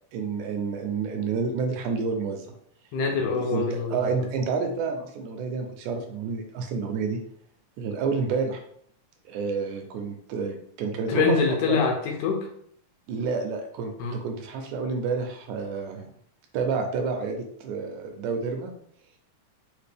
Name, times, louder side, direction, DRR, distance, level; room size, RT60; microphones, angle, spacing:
voice 1, 0.1-2.5 3.4-7.2 7.8-8.6 9.3-11.3 11.7-11.8 13.1-16.1 16.5-18.7, right 5 dB, 80° right, 4 dB, 1.9 m, -29 dB
voice 2, 2.9-4.0 11.1-12.5 14.0-14.2, left 5 dB, 80° left, 1 dB, 2.1 m, -24 dB
5.0 x 2.5 x 3.3 m, 0.65 s
omnidirectional pair, 3.6 m